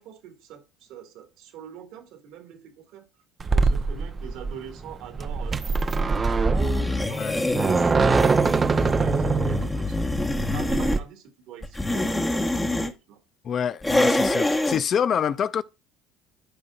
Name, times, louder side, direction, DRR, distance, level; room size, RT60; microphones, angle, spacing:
voice 1, 0.0-3.1 3.5-7.2 8.3-13.2, right 8 dB, 70° right, 2.2 m, -44 dB
sound 1, 3.4-11.0, right 4 dB, 30° right, 0.8 m, -23 dB
sound 2, 6.5-11.0 11.6-12.9 13.8-14.8, left 2 dB, 10° left, 1.2 m, -25 dB
voice 2, 7.1-7.5 13.4-15.6, left 8 dB, 45° left, 0.5 m, -26 dB
13.5 x 5.1 x 2.4 m
supercardioid pair, 85°, 0 cm